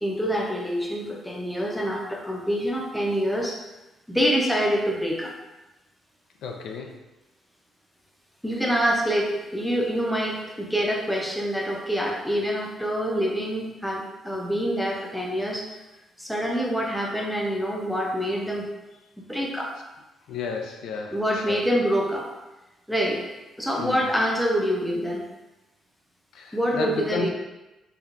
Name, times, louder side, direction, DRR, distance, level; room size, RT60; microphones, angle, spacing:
voice 1, 0.0-3.6 4.1-5.3 8.4-15.6 16.2-18.7 19.2-19.7 21.1-22.3 22.9-23.2 23.6-25.3 26.5-27.3, equal, ahead, -1 dB, 0.7 m, -26 dB
voice 2, 6.4-6.9 20.3-21.1 21.5-21.6 23.8-24.0 26.3-27.3, left 4 dB, 80° left, 2 dB, 0.4 m, -32 dB
4.4 x 2.3 x 2.5 m, 1.0 s
cardioid pair, 90°, 0 cm